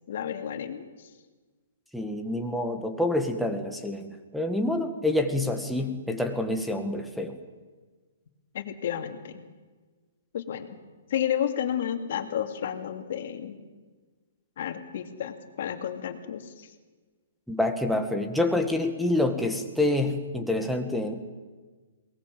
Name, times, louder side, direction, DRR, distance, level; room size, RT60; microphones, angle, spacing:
voice 1, 0.1-0.8 8.5-9.4 10.3-10.7 11.1-13.6 14.6-16.4, left 9 dB, 55° left, 5 dB, 2.6 m, -31 dB
voice 2, 1.9-7.4 17.5-21.1, left 1 dB, ahead, 3 dB, 1.9 m, -27 dB
23.0 x 19.0 x 7.7 m, 1.4 s
hypercardioid pair, 145°, 0 cm